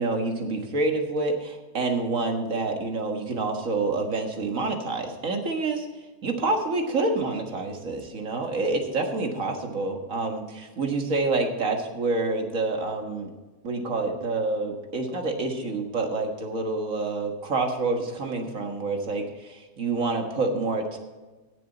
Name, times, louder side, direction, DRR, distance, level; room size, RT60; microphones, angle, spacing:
voice 1, 0.0-5.9 6.2-13.3 13.6-21.0, right 3 dB, 55° right, 3 dB, 2.0 m, -27 dB
17.0 x 7.4 x 4.1 m, 1.2 s
omnidirectional pair, 1.6 m